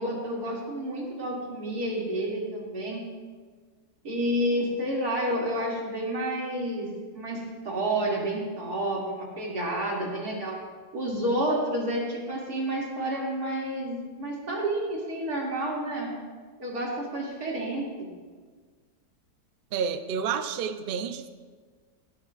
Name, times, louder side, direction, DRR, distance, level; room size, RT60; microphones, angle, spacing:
voice 1, 0.0-3.0 4.0-6.9 7.1-10.5 10.9-16.1 16.6-18.1, right 1 dB, 65° right, -3 dB, 3.0 m, -30 dB
voice 2, 19.7-21.3, right 7 dB, 80° right, 9 dB, 0.5 m, -30 dB
17.0 x 12.5 x 2.5 m, 1.5 s
omnidirectional pair, 1.8 m